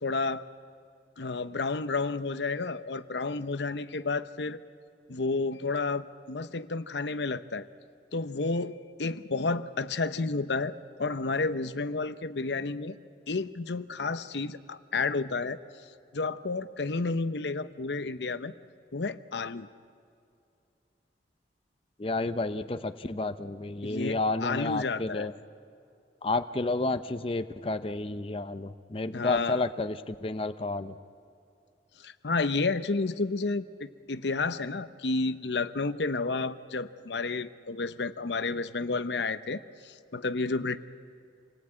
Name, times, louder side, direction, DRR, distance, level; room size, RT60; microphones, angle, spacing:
voice 1, 0.0-0.4 1.2-4.6 5.1-7.7 8.1-12.9 13.3-15.6 16.1-18.5 18.9-19.7 23.8-25.3 29.1-29.7 32.0-40.8, left 3 dB, 80° left, 12 dB, 0.8 m, -31 dB
voice 2, 22.0-25.3 26.2-30.9, left 2 dB, 30° left, 10 dB, 0.6 m, -31 dB
28.0 x 19.0 x 8.7 m, 2.5 s
head